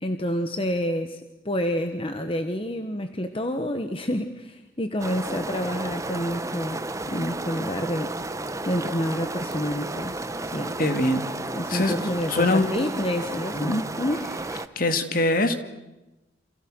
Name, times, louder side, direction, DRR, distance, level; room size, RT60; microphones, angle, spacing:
voice 1, 0.0-8.1 8.6-10.8 11.5-13.7 14.0-14.3, equal, 30° left, 7 dB, 1.4 m, -28 dB
sound 1, 5.0-14.7, right 2 dB, 15° right, 1.0 m, -33 dB
voice 2, 10.8-11.3 11.7-12.7 13.5-13.8 14.8-15.6, left 2 dB, 50° left, 7 dB, 2.4 m, -23 dB
29.5 x 27.5 x 6.4 m, 1.0 s
head